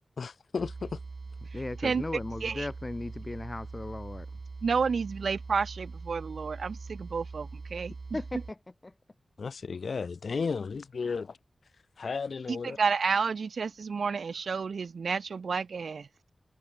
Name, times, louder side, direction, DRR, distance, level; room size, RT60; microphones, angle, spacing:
voice 1, 0.2-1.0 9.4-11.4 12.0-12.8, left 5 dB, 80° left, 2.3 m, -34 dB
sound 1, 0.6-8.5, right 3 dB, 55° right, 4.5 m, -42 dB
voice 2, 1.5-4.3 8.1-8.6 8.8-8.9, left 2 dB, 30° left, 1.9 m, -36 dB
voice 3, 4.6-7.9 12.5-16.1, right 5 dB, 85° right, 0.6 m, -30 dB
wide cardioid pair, 80°, 0 cm